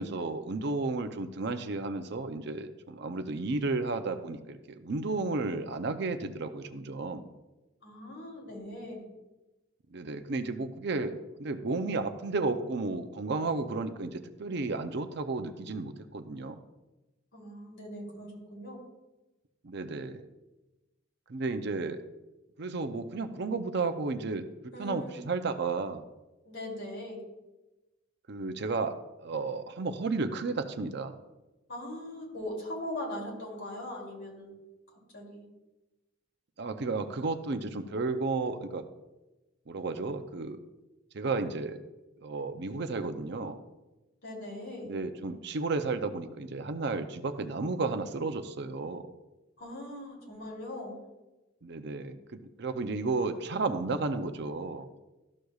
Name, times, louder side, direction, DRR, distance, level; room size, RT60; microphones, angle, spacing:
voice 1, 0.0-7.3 9.9-16.6 19.6-20.2 21.3-22.0 22.6-24.4 24.8-26.0 28.3-31.1 36.6-38.8 39.7-40.6 41.1-41.8 42.2-43.6 44.8-49.0 51.6-54.9, right 3 dB, 60° right, 8 dB, 0.5 m, -33 dB
voice 2, 7.8-9.0 17.3-18.8 24.7-25.1 26.4-27.2 31.7-34.5 35.1-35.4 44.2-44.9 49.6-51.0, left 1 dB, 70° left, -3 dB, 2.9 m, -40 dB
13.0 x 6.4 x 2.4 m, 1.0 s
head